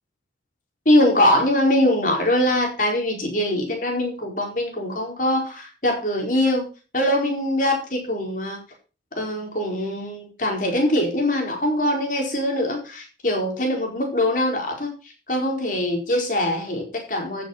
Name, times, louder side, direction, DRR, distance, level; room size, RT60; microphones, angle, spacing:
voice 1, 0.8-6.7 6.9-8.6 9.1-14.9 15.3-17.4, left 1 dB, 45° left, 1 dB, 4.5 m, -22 dB
14.5 x 6.7 x 5.8 m, 0.34 s
head